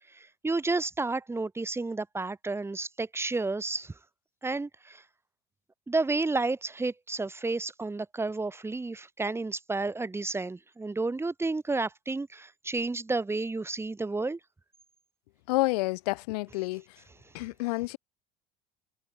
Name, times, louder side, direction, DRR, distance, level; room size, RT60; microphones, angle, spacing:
voice 1, 0.1-3.9 4.4-5.0 5.9-14.4, right 3 dB, 10° right, 7.5 m, -31 dB
voice 2, 15.5-16.8 17.3-18.0, left 23 dB, 85° left, 5.3 m, -29 dB
supercardioid pair, 120°, 20 cm